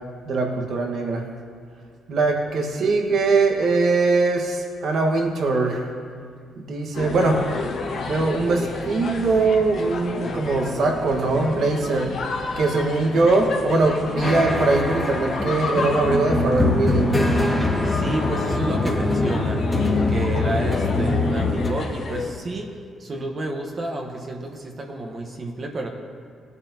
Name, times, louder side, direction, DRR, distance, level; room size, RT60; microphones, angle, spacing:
voice 1, 0.3-1.2 2.1-5.9 6.6-7.4 8.1-12.1 12.6-17.0, right 3 dB, 65° right, 1 dB, 1.5 m, -21 dB
sound 1, 6.9-22.3, left 4 dB, 70° left, 1.5 m, -31 dB
sound 2, 14.2-21.7, left 2 dB, 15° left, 1.9 m, -23 dB
voice 2, 17.8-19.6 20.1-22.7 23.0-25.9, right 2 dB, 40° right, 1 dB, 1.3 m, -30 dB
17.5 x 9.5 x 2.9 m, 2.2 s
cardioid pair, 90°, 0 cm